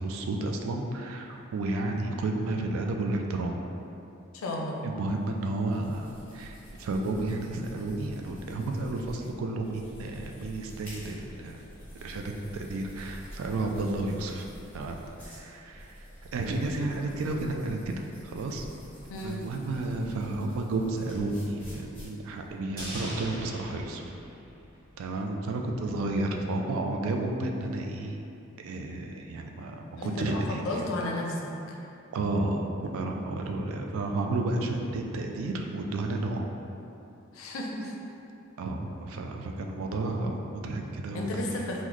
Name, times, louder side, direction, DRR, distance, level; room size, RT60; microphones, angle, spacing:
voice 1, 0.0-3.6 4.8-11.6 12.0-14.4 14.7-16.0 16.3-18.7 19.2-24.1 25.0-28.2 28.6-30.9 32.1-36.6 38.6-41.6, right 2 dB, 80° right, 2 dB, 0.3 m, -32 dB
voice 2, 4.3-4.8 19.1-19.4 30.0-31.8 37.3-38.0 41.1-41.8, left 1 dB, 75° left, -1 dB, 0.4 m, -33 dB
sound 1, 5.1-22.6, equal, 10° left, 0.7 m, -48 dB
sound 2, 22.8-25.2 25.4-25.5, right 1 dB, 45° right, 1.3 m, -41 dB
3.0 x 2.0 x 3.8 m, 2.8 s
head